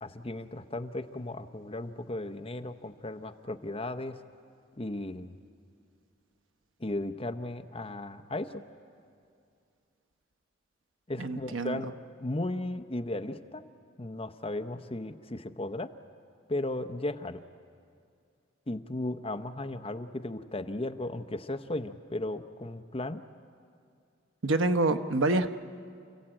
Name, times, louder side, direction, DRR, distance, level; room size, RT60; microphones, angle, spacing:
voice 1, 0.0-4.2 4.8-5.4 6.8-8.6 11.1-11.9 12.2-13.6 14.0-15.9 16.5-17.4 18.7-23.2, left 2 dB, 30° left, 8 dB, 0.7 m, -35 dB
voice 2, 11.2-11.8 24.4-25.5, right 2 dB, 90° right, 10 dB, 0.9 m, -26 dB
29.5 x 15.5 x 8.8 m, 2.3 s
head